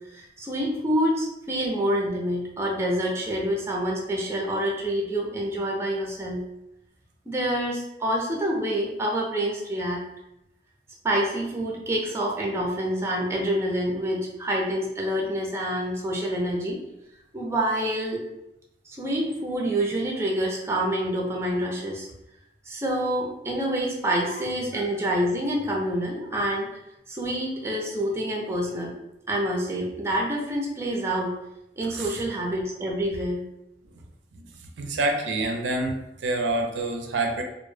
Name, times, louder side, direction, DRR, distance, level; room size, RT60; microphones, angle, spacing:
voice 1, 0.1-6.4 7.3-10.0 11.0-16.8 17.3-18.2 18.9-22.1 22.7-26.7 27.1-28.9 29.3-31.4 31.8-33.4, right 1 dB, 15° right, -2 dB, 0.4 m, -27 dB
voice 2, 34.8-37.4, right 2 dB, 85° right, 3 dB, 0.4 m, -27 dB
2.1 x 2.0 x 3.1 m, 0.87 s
head